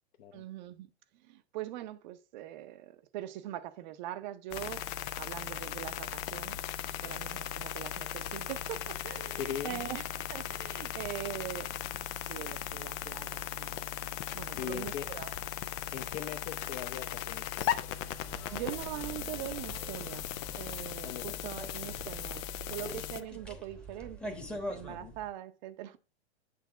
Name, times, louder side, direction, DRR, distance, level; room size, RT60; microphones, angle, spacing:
voice 1, 0.3-0.9 1.2-4.8 5.2-6.6 7.0-10.0 10.3-11.7 12.3-13.7 14.3-15.3 18.5-20.3 20.6-22.4 22.7-26.0, right 13 dB, 45° right, 0.8 m, -42 dB
sound 1, 4.5-23.2, left 11 dB, 25° left, 0.4 m, -38 dB
voice 2, 9.2-9.8 14.5-15.2 15.8-18.3 21.0-21.4 24.9-25.2, left 9 dB, 40° left, 0.9 m, -41 dB
sound 2, 18.2-25.3, right 1 dB, 5° left, 1.1 m, -45 dB
8.6 x 3.4 x 5.7 m
hypercardioid pair, 115°, 33 cm